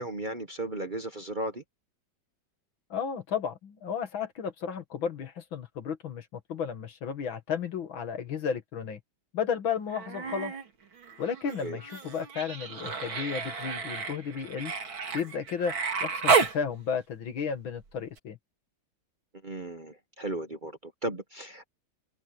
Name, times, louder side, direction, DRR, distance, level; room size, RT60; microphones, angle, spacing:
voice 1, 0.0-1.6 11.6-11.8 19.4-21.7, right 2 dB, 30° right, 1.0 m, -35 dB
voice 2, 2.9-9.0 9.3-10.5 11.2-14.7 15.1-15.7 16.0-18.4, left 7 dB, 80° left, 2.5 m, -33 dB
Human voice, 9.9-10.7 11.0-16.6 18.2-18.3, right 5 dB, 80° right, 3.4 m, -31 dB
omnidirectional pair, 2.1 m